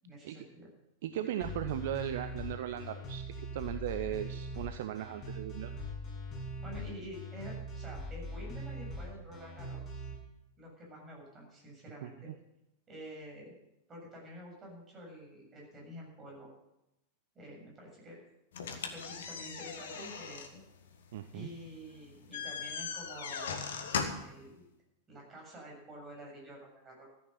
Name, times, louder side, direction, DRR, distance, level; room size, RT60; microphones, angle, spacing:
voice 1, 0.0-0.7 6.6-10.1 10.6-12.3 12.9-13.6 13.9-16.5 17.4-18.2 18.6-20.6 21.3-23.6 24.2-24.6 25.1-27.1, equal, 25° right, -1 dB, 7.3 m, -49 dB
voice 2, 1.0-3.2 3.5-5.7 12.0-12.3 21.1-21.5, right 11 dB, 55° right, 10 dB, 0.7 m, -37 dB
sound 1, 1.4-10.1, equal, 25° left, 7.0 m, -41 dB
sound 2, 18.5-24.4, left 6 dB, 60° left, 1.6 m, -39 dB
14.5 x 10.0 x 6.7 m, 0.87 s
figure-of-eight pair, 90°, 0 cm